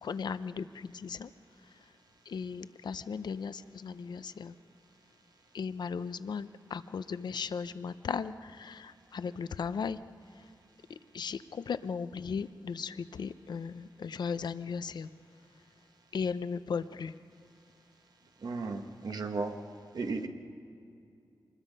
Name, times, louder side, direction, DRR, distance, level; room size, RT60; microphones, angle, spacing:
voice 1, 0.0-1.3 2.3-4.5 5.5-10.0 11.1-15.1 16.1-17.1, left 6 dB, 80° left, 13 dB, 0.6 m, -36 dB
voice 2, 18.4-19.6 19.9-20.3, right 3 dB, 65° right, 5 dB, 1.4 m, -35 dB
25.5 x 20.5 x 5.4 m, 2.4 s
wide cardioid pair, 145°, 7 cm